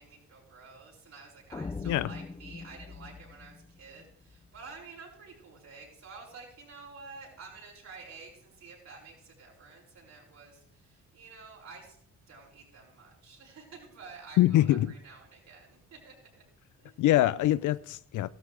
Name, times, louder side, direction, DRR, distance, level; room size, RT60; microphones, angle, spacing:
voice 1, 0.0-12.0 12.3-16.4 16.8-16.9, right 4 dB, 60° right, 6.3 m, -50 dB
sound 1, 1.5-4.6, left 4 dB, 15° left, 0.5 m, -42 dB
voice 2, 14.4-14.9 17.0-18.3, left 14 dB, 75° left, 0.6 m, -24 dB
15.0 x 12.5 x 3.4 m
cardioid pair, 90°, 30 cm